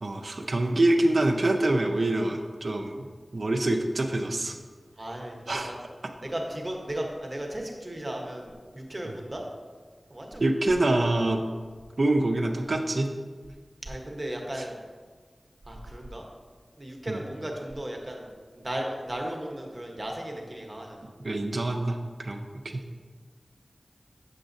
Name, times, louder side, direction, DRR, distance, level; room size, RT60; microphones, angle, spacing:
voice 1, 0.0-3.1 3.3-4.5 5.5-5.7 10.4-11.4 12.0-13.1 17.1-17.2 21.2-22.8, right 2 dB, 70° right, 2 dB, 0.5 m, -25 dB
voice 2, 5.0-5.8 6.2-9.4 10.1-10.5 13.8-14.8 15.7-16.2 16.8-18.3 18.5-21.1, right 1 dB, 35° right, 1 dB, 1.1 m, -35 dB
7.4 x 6.9 x 2.6 m, 1.5 s
wide cardioid pair, 45°, 0 cm